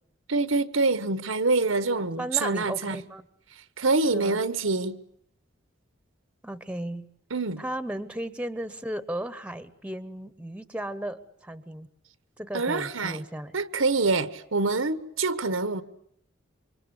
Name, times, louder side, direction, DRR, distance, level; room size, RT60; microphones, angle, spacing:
voice 1, 0.3-3.0 3.8-5.0 7.3-7.6 12.5-13.2 13.5-15.8, right 3 dB, 85° right, 1.3 m, -25 dB
voice 2, 2.2-3.3 4.1-4.4 6.4-7.1 7.6-11.9 12.4-13.5, right 1 dB, 5° right, 1.0 m, -35 dB
28.0 x 25.0 x 8.3 m
head